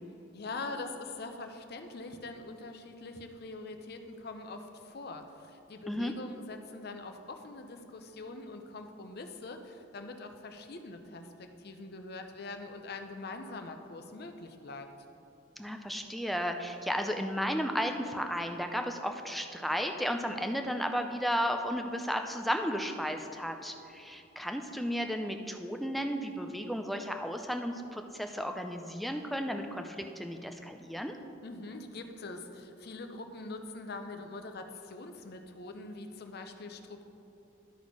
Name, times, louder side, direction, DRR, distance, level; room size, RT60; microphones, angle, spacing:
voice 1, 0.3-14.9 31.4-37.0, left 3 dB, 55° left, 6 dB, 0.6 m, -43 dB
voice 2, 15.6-31.2, equal, ahead, 5 dB, 0.4 m, -34 dB
12.5 x 4.2 x 4.7 m, 2.9 s
head